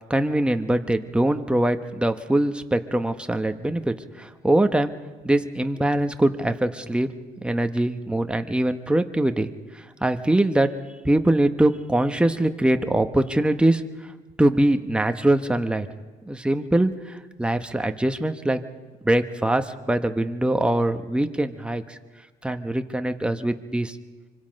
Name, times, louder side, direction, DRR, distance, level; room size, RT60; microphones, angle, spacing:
voice 1, 0.1-4.9 5.2-7.1 7.4-10.7 11.0-13.8 14.4-15.9 16.2-18.6 19.0-22.0 22.4-24.0, right 1 dB, 5° right, 7 dB, 1.2 m, -23 dB
25.5 x 25.0 x 5.4 m, 1.4 s
cardioid pair, 110°, 17 cm